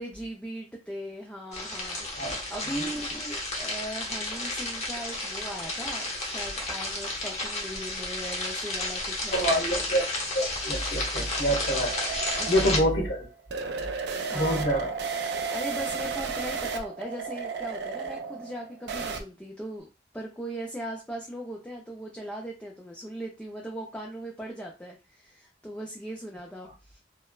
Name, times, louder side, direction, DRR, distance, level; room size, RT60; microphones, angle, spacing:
voice 1, 0.0-9.8 11.5-11.6 12.4-12.9 14.2-15.0 15.4-19.9 20.1-27.0, right 1 dB, 5° left, -2 dB, 0.4 m, -39 dB
sound 1, 1.5-12.8, left 2 dB, 40° left, 0.8 m, -32 dB
voice 2, 9.3-12.0 12.5-13.2 14.3-14.9, equal, 70° left, -2 dB, 1.3 m, -26 dB
sound 2, 10.2-19.2, right 5 dB, 70° right, 0.4 m, -34 dB
3.1 x 2.0 x 2.3 m, 0.28 s
head